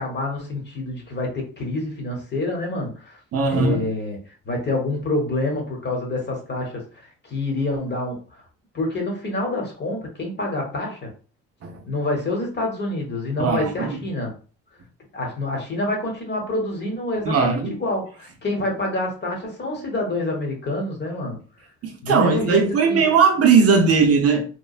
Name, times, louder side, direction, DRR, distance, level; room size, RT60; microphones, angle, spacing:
voice 1, 0.0-3.2 3.5-4.2 4.4-8.2 8.7-11.1 11.9-14.3 15.1-21.4 22.0-23.0, left 2 dB, 35° left, 1.0 m, -27 dB
voice 2, 3.3-3.9 11.6-11.8 13.4-14.0 17.3-17.8 21.8-24.4, right 5 dB, 50° right, 0.6 m, -18 dB
3.0 x 2.1 x 2.3 m
cardioid pair, 90°, 30 cm